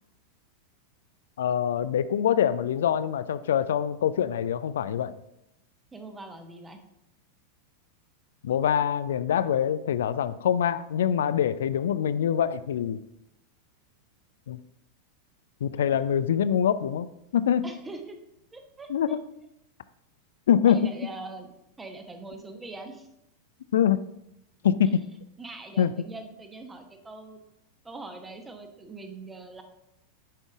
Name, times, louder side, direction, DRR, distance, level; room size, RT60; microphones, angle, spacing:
voice 1, 1.4-5.1 8.4-13.0 14.5-14.6 15.6-17.1 17.3-17.7 18.9-19.2 20.5-20.8 23.7-24.0 24.6-25.0 25.8-25.9, left 9 dB, 60° left, 15 dB, 0.4 m, -24 dB
voice 2, 5.9-6.8 15.9-16.0 17.6-18.2 18.5-19.2 20.7-23.1 25.4-27.4 27.8-29.6, right 3 dB, 10° right, 6 dB, 1.1 m, -42 dB
10.0 x 5.3 x 3.5 m, 0.84 s
figure-of-eight pair, 90°, 0 cm